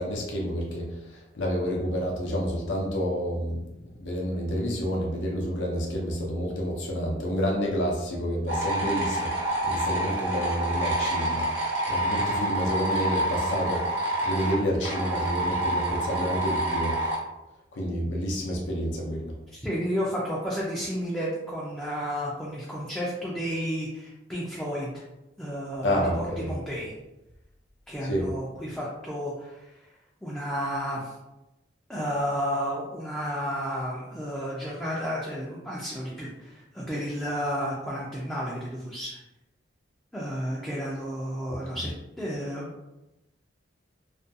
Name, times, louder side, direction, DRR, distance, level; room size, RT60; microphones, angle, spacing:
voice 1, 0.0-11.5 11.9-13.8 14.2-17.2 17.7-19.3 25.8-26.5 28.0-28.3, equal, 85° left, -2 dB, 0.5 m, -29 dB
sound 1, 8.5-17.2, right 1 dB, 65° right, 0.9 m, -28 dB
voice 2, 19.5-24.9 25.4-26.9 27.9-29.8 30.2-31.1 31.9-39.2 40.1-41.9 42.2-42.7, equal, 5° left, -7 dB, 0.3 m, -32 dB
2.4 x 2.2 x 2.6 m, 0.96 s
head